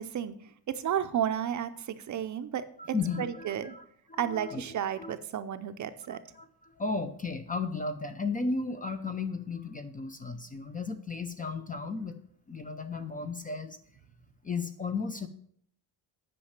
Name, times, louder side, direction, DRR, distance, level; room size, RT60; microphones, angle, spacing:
voice 1, 0.0-2.7 3.2-3.7 4.2-6.2, right 9 dB, 45° right, 11 dB, 0.5 m, -32 dB
voice 2, 2.8-3.8 4.1-4.6 5.0-5.1 6.3-12.2 12.5-13.8 14.4-15.3, left 4 dB, 20° left, 9 dB, 0.5 m, -34 dB
8.8 x 5.4 x 6.5 m, 0.63 s
cardioid pair, 165°, 43 cm